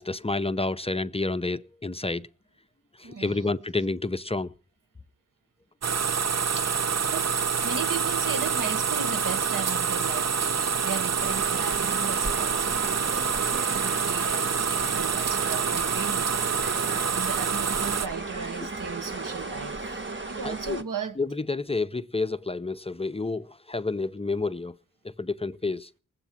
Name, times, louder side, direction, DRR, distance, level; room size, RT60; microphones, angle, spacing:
voice 1, 0.0-2.3 3.0-4.5 20.4-20.8 21.2-24.7 25.0-25.9, left 3 dB, 20° left, 0.7 m, -29 dB
voice 2, 3.0-3.6 6.5-6.8 7.1-16.3 17.1-21.2, right 6 dB, 80° right, 1.5 m, -37 dB
sound 1, 5.8-18.1, right 6 dB, 55° right, 0.7 m, -26 dB
sound 2, 11.2-20.8, right 3 dB, 35° right, 1.8 m, -36 dB
19.5 x 8.3 x 7.5 m
cardioid pair, 55°, 32 cm